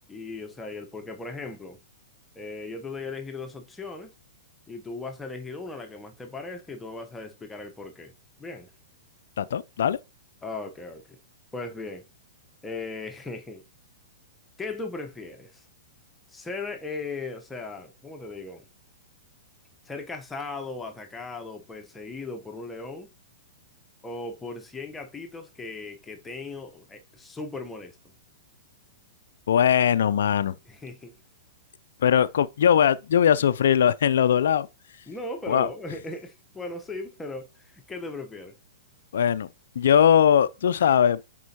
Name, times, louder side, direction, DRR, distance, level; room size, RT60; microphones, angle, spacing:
voice 1, 0.1-1.8 2.3-4.1 4.7-8.1 8.4-8.7 10.4-11.2 11.5-12.1 12.6-13.6 14.6-15.6 16.3-18.7 19.8-23.1 24.0-28.0 30.7-31.1 35.1-38.6, left 3 dB, 10° left, 0.9 m, -37 dB
voice 2, 9.4-10.0 29.5-30.5 32.0-34.7 35.5-35.7 39.1-39.5 39.8-41.2, left 9 dB, 65° left, 0.4 m, -20 dB
10.0 x 4.3 x 2.9 m
figure-of-eight pair, 110°, 0 cm